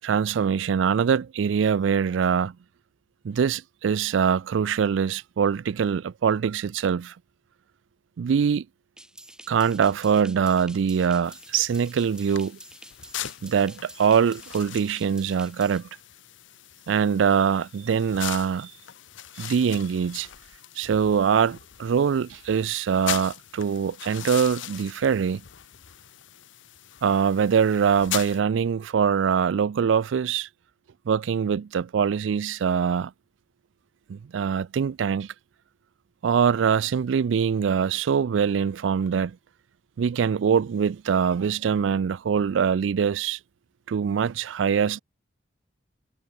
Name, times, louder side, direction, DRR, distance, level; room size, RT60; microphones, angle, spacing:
voice 1, 0.0-2.5 3.2-7.1 8.2-8.7 9.5-12.6 13.4-15.9 16.9-18.7 19.4-20.3 20.8-25.4 27.0-30.5 31.1-33.1 34.1-35.3 36.2-39.4 40.0-43.4 43.9-45.0, right 7 dB, 85° right, 0.4 m, -23 dB
sound 1, 9.0-15.8, right 1 dB, 5° right, 6.4 m, -48 dB
sound 2, 11.2-28.4, left 11 dB, 85° left, 0.8 m, -40 dB
head